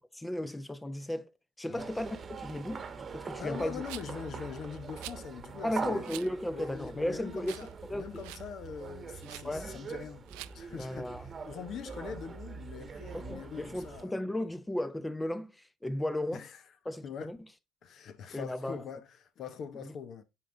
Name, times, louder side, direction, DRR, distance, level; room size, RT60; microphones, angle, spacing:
voice 1, 0.1-1.3 1.6-2.9 3.1-3.8 5.6-7.6 7.9-8.0 9.4-9.8 10.8-11.2 13.1-16.4 16.9-17.4 18.3-18.8, left 1 dB, 10° left, 0.7 m, -35 dB
sound 1, 1.8-14.0, right 5 dB, 35° right, 1.1 m, -43 dB
voice 2, 3.4-6.1 6.5-14.2 16.3-16.6 17.0-17.4 17.8-20.2, left 7 dB, 55° left, 1.1 m, -43 dB
Rattle, 3.9-4.2 5.0-5.2 6.0-6.3 6.8-6.9 7.4-7.7 8.0-8.5 9.2-9.5 10.3-10.5, right 20 dB, 85° right, 0.4 m, -45 dB
9.0 x 4.8 x 3.8 m
supercardioid pair, 95°, 0 cm